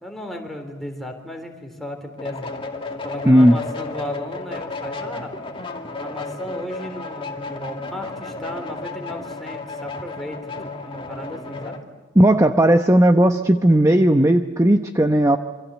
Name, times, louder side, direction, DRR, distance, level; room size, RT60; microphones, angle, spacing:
voice 1, 0.0-2.5 3.0-5.3 6.0-11.8, left 1 dB, ahead, 3 dB, 3.7 m, -35 dB
sound 1, 2.2-11.8, left 3 dB, 30° left, 2.3 m, -33 dB
voice 2, 3.2-3.6 12.2-15.4, right 1 dB, 15° right, 7 dB, 0.9 m, -15 dB
27.5 x 25.5 x 8.3 m, 1.3 s
head